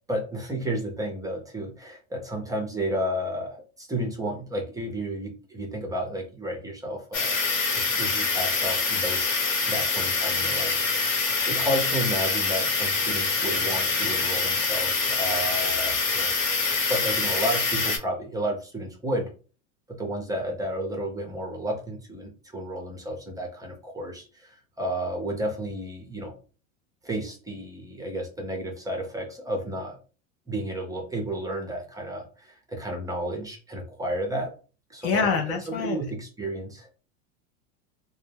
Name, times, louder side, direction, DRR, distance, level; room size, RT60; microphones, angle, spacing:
voice 1, 0.1-7.4 7.7-9.3 9.7-11.2 11.5-16.3 16.9-19.3 19.9-26.4 27.0-30.0 30.5-34.5 34.9-35.3 35.7-36.9, right 1 dB, 10° right, 1 dB, 0.6 m, -32 dB
sound 1, 7.1-18.0, left 4 dB, 65° left, 1.2 m, -25 dB
voice 2, 35.0-36.0, left 5 dB, 40° left, 4 dB, 0.4 m, -25 dB
2.1 x 2.1 x 3.3 m, 0.36 s
supercardioid pair, 120°, 40 cm